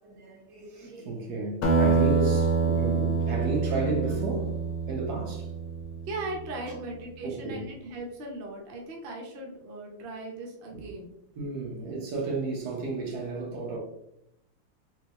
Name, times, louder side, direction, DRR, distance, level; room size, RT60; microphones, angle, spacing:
voice 1, 0.0-4.6 4.9-5.5 6.7-6.8 7.2-7.6 10.7-10.9 11.3-13.8, right 3 dB, 55° right, 1.4 m, -33 dB
Acoustic guitar, 1.6-6.5, right 4 dB, 80° left, 1.6 m, -26 dB
voice 2, 5.9-11.1, right 2 dB, 75° right, 0.5 m, -38 dB
4.3 x 3.3 x 2.9 m
omnidirectional pair, 2.3 m